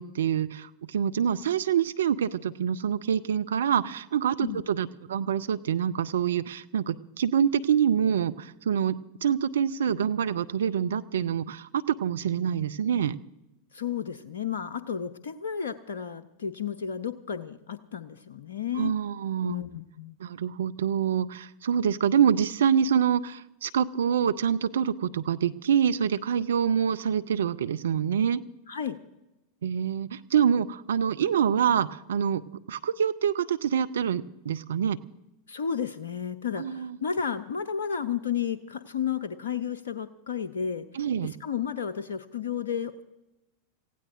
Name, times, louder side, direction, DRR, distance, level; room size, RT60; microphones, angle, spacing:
voice 1, 0.0-11.7 12.0-13.2 18.8-19.5 20.2-28.4 29.6-32.4 32.7-35.0 36.6-37.0 41.0-41.3, right 8 dB, 70° right, 11 dB, 0.5 m, -26 dB
voice 2, 13.7-18.9 19.4-20.2 28.7-29.0 35.5-40.8 41.2-43.0, left 7 dB, 70° left, 10 dB, 0.6 m, -32 dB
28.5 x 16.0 x 2.5 m, 0.94 s
figure-of-eight pair, 90°, 0 cm